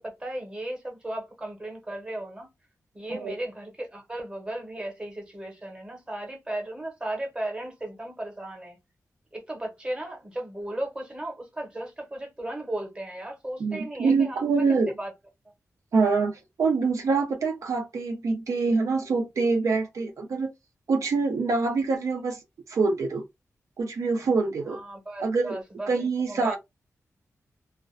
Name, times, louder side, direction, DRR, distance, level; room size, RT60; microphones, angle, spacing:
voice 1, 0.0-2.5 2.9-8.7 9.3-14.7 15.0-15.1 24.7-26.6, right 1 dB, 15° right, 0.9 m, -36 dB
voice 2, 13.6-14.9 15.9-20.5 20.9-22.4 22.7-23.2 23.8-24.8 25.2-25.6 25.9-26.6, right 4 dB, 70° right, 0.5 m, -25 dB
2.4 x 2.1 x 2.4 m
wide cardioid pair, 160°, 6 cm